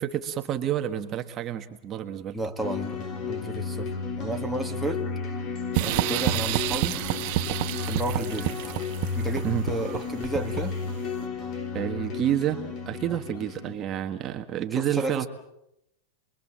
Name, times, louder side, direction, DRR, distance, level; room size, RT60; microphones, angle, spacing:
voice 1, 0.0-2.4 9.4-9.7 11.7-15.3, right 10 dB, 30° right, 6 dB, 1.3 m, -29 dB
voice 2, 2.3-3.9 4.2-5.0 5.8-7.0 7.9-8.5 9.2-10.7 14.7-15.3, right 1 dB, ahead, 9 dB, 1.9 m, -32 dB
sound 1, 2.6-13.8, left 4 dB, 35° left, 3.5 m, -33 dB
sound 2, 5.7-10.9, right 17 dB, 50° right, 1.1 m, -29 dB
27.5 x 22.0 x 7.4 m, 0.85 s
supercardioid pair, 150°, 0 cm